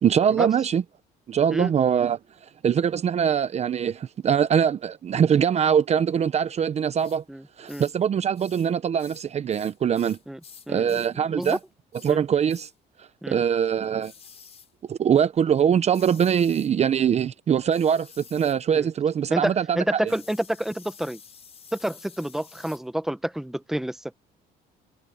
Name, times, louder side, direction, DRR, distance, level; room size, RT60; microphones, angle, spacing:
voice 1, 0.0-0.8 1.3-2.2 2.6-7.2 7.6-10.2 10.7-11.6 12.0-12.7 13.3-14.1 14.9-20.0, right 8 dB, 40° right, 0.7 m, -22 dB
sound 1, 7.0-7.2 7.7-8.0 8.4-8.7 9.0-11.1 11.4-11.7 11.9-12.2 12.5-12.7 14.0-14.7 15.9-16.7 17.7-18.6 20.1-22.8, left 6 dB, 35° left, 5.8 m, -49 dB
voice 2, 7.3-7.8 10.3-10.4 10.7-11.6 12.1-12.2 13.2-13.4 18.7-18.9 19.3-21.2 21.7-24.0, right 1 dB, ahead, 1.0 m, -29 dB
cardioid pair, 110°, 17 cm